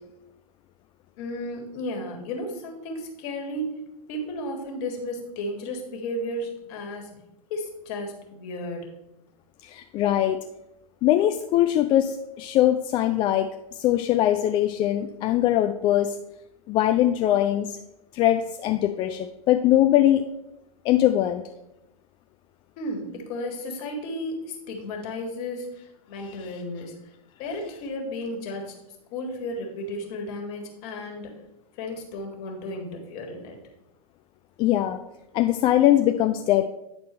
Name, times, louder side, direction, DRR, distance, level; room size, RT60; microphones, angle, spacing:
voice 1, 1.2-3.8 4.1-7.1 7.5-8.9 22.8-26.9 27.4-28.7 29.1-31.3 31.8-33.6, left 1 dB, 45° left, 2 dB, 1.8 m, -33 dB
voice 2, 9.6-10.4 11.0-16.2 16.7-17.8 18.1-20.3 20.8-21.4 26.4-26.5 34.6-35.0 35.3-36.6, left 13 dB, 25° left, 6 dB, 0.3 m, -21 dB
9.1 x 4.3 x 4.2 m, 0.89 s
figure-of-eight pair, 105°, 19 cm